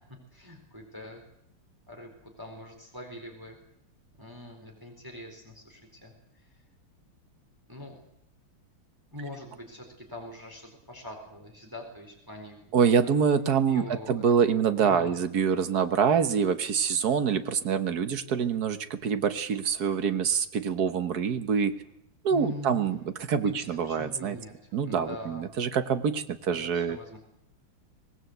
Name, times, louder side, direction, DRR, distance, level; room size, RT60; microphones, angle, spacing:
voice 1, 0.3-1.2 1.9-3.6 4.2-6.5 7.7-8.0 9.1-12.6 13.0-13.1 13.7-15.1 22.3-22.9 23.4-25.4 26.5-27.2, left 1 dB, 10° right, 2 dB, 4.1 m, -43 dB
voice 2, 12.7-21.7 22.2-23.0 23.3-24.4 24.7-27.0, right 7 dB, 50° right, 10 dB, 1.6 m, -25 dB
24.5 x 19.0 x 8.0 m, 0.79 s
omnidirectional pair, 2.4 m